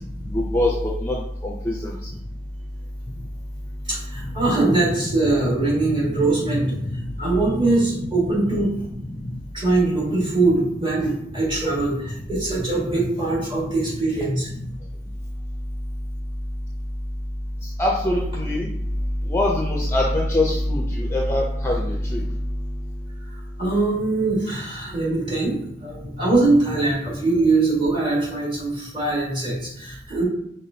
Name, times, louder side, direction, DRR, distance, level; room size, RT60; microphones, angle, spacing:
voice 1, 0.3-0.7 1.0-1.2 1.4-2.0 4.4-4.5 5.4-7.0 7.6-8.0 8.4-8.5 9.0-9.4 9.9-10.0 12.8-12.9 13.7-13.8 17.8-18.7 19.3-22.3, left 1 dB, 15° left, -2 dB, 0.5 m, -24 dB
voice 2, 3.9-6.7 7.2-8.7 9.5-14.5 23.6-30.2, right 2 dB, 30° right, -5 dB, 1.7 m, -22 dB
5.8 x 3.2 x 2.7 m, 0.74 s
head